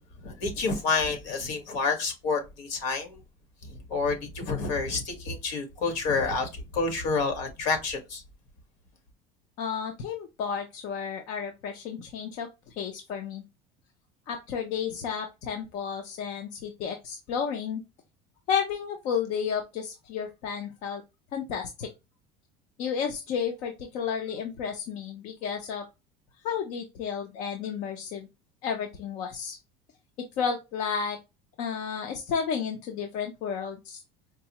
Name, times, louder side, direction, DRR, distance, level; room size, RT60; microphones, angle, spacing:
voice 1, 0.2-3.2 3.9-8.2, left 4 dB, 75° left, 1.5 m, -29 dB
voice 2, 9.6-13.4 14.3-17.8 18.5-21.0 21.3-21.9 22.8-25.9 26.4-28.3 28.6-29.6 30.4-31.2 31.6-34.0, left 7 dB, 55° left, 0.6 m, -32 dB
4.6 x 2.0 x 2.8 m
cardioid pair, 160°, 15 cm